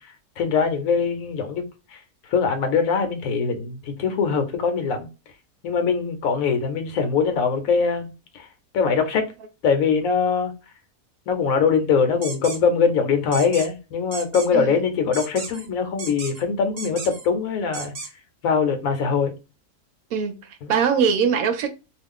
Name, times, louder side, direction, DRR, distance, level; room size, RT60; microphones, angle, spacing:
voice 1, 0.4-1.6 1.9-2.0 2.3-5.1 5.6-8.5 8.7-9.3 9.6-10.5 11.3-17.9 18.4-19.3 20.6-20.7, left 5 dB, 70° left, 1.0 m, -22 dB
sound 1, 12.2-12.6 13.3-13.7 14.1-14.5 15.1-15.7 16.0-16.4 16.8-17.3 17.7-18.1, right 3 dB, 50° right, 1.0 m, -34 dB
voice 2, 20.1-21.7, right 6 dB, 75° right, 1.0 m, -22 dB
2.4 x 2.4 x 3.5 m
omnidirectional pair, 1.6 m